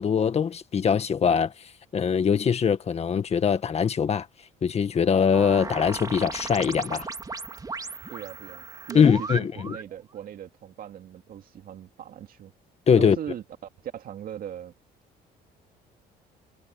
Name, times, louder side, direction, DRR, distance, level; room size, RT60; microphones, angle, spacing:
voice 1, 0.0-1.5 1.9-4.3 4.6-7.1 8.9-9.8 12.9-13.2, left 7 dB, 40° left, 1.7 m, -22 dB
sound 1, 5.3-9.9, right 4 dB, 20° right, 3.0 m, -36 dB
voice 2, 8.1-12.5 13.0-13.4 13.8-14.7, right 10 dB, 55° right, 2.5 m, -39 dB
cardioid pair, 110°, 17 cm